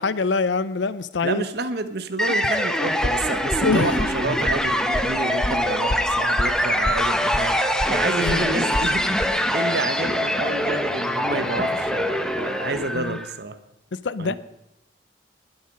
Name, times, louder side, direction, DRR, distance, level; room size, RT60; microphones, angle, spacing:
voice 1, 0.0-1.4 3.6-3.9 8.2-8.5 12.9-13.2 14.0-14.4, left 4 dB, 75° left, 16 dB, 0.6 m, -24 dB
voice 2, 1.2-7.6 7.9-13.6 14.2-14.4, right 3 dB, 60° right, 10 dB, 1.0 m, -29 dB
sound 1, 2.2-13.3, equal, 5° left, 0.9 m, -24 dB
sound 2, 3.0-9.2, left 2 dB, 30° left, 0.5 m, -30 dB
20.5 x 8.0 x 5.3 m, 0.86 s
head